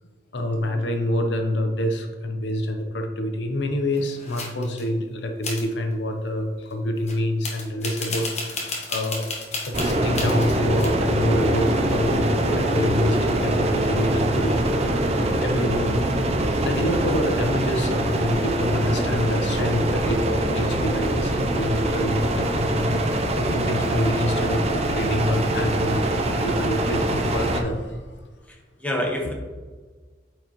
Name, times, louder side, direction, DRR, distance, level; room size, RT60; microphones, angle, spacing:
voice 1, 0.3-9.3 9.6-14.8 15.1-23.0 23.2-28.2 29.2-29.3, left 1 dB, 75° left, 5 dB, 0.8 m, -27 dB
sound 1, 3.9-4.9 5.4-5.6 7.1-7.2 7.4-10.9, left 3 dB, 40° left, 1.3 m, -32 dB
sound 2, 9.7-27.6, right 1 dB, 35° right, 0.6 m, -23 dB
voice 2, 28.5-29.3, left 1 dB, 10° left, 0 dB, 1.0 m, -28 dB
8.9 x 4.7 x 3.1 m, 1.3 s
head